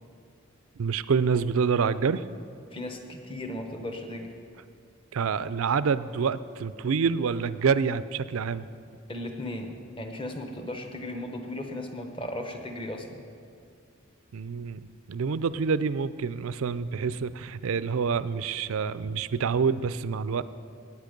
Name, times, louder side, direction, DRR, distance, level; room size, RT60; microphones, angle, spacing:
voice 1, 0.8-2.2 5.1-8.7 14.3-20.4, right 5 dB, 75° right, 15 dB, 0.4 m, -27 dB
voice 2, 2.7-4.3 9.1-13.2, left 1 dB, 25° left, 5 dB, 1.0 m, -36 dB
19.0 x 8.6 x 5.2 m, 2.4 s
head